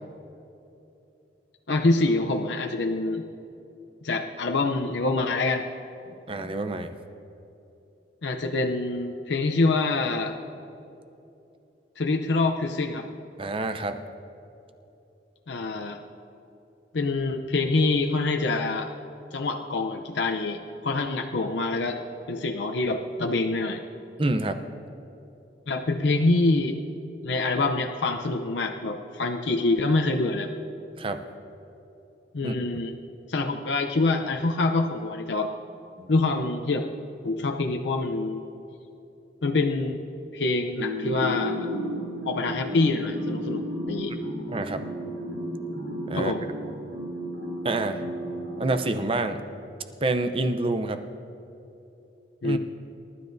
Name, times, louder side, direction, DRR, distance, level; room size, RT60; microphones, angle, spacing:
voice 1, 1.7-3.3 4.0-5.6 8.2-10.3 12.0-13.1 15.5-16.0 16.9-18.9 19.3-22.0 22.3-23.8 25.7-26.8 27.2-30.5 32.3-32.9 33.3-35.5 36.1-36.9 37.2-38.4 39.4-40.0 40.3-41.7 42.2-44.1 46.1-46.5 52.4-52.6, left 3 dB, 80° left, 4 dB, 0.7 m, -25 dB
voice 2, 6.1-6.9 13.4-14.0 24.2-24.6 31.0-31.2 32.4-32.5 36.0-36.1 44.5-44.8 46.1-46.3 47.6-48.0 48.6-49.4 50.0-51.0 52.4-52.6, right 2 dB, 30° right, 8 dB, 0.6 m, -27 dB
sound 1, 40.8-49.6, equal, 75° right, 3.3 m, -33 dB
27.5 x 12.5 x 2.7 m, 2.9 s
head